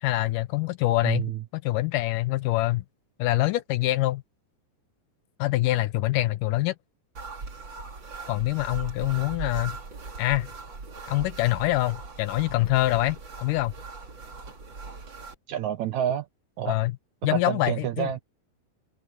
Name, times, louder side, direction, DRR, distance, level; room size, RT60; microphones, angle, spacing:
voice 1, 0.0-2.8 3.2-4.2 5.4-6.7 8.3-9.8 10.2-10.5 11.1-13.7 16.7-16.9 17.2-18.1, left 17 dB, 75° left, 2.1 m, -25 dB
voice 2, 1.0-1.4 15.5-16.3 16.6-16.8 17.3-18.2, right 10 dB, 70° right, 1.9 m, -28 dB
sound 1, 7.2-15.4, right 4 dB, 35° right, 3.1 m, -39 dB
omnidirectional pair, 4.1 m